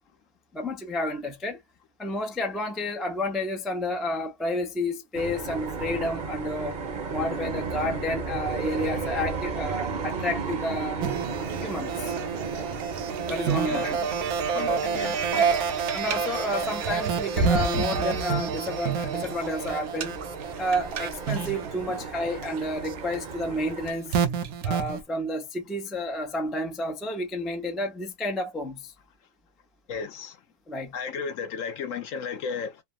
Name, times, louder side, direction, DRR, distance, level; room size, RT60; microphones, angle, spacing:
voice 1, 0.5-1.6 2.0-6.8 7.1-11.0 11.6-12.1 13.3-14.0 15.9-20.2 20.6-24.2 24.6-28.9 30.7-31.0, left 1 dB, ahead, 0.3 m, -30 dB
sound 1, 5.1-23.9, right 4 dB, 40° right, 0.8 m, -35 dB
sound 2, 11.0-25.0, right 6 dB, 75° right, 1.1 m, -29 dB
voice 2, 14.5-15.6 29.9-30.4 30.9-32.8, left 6 dB, 65° left, 0.9 m, -34 dB
3.2 x 2.1 x 2.3 m
omnidirectional pair, 1.6 m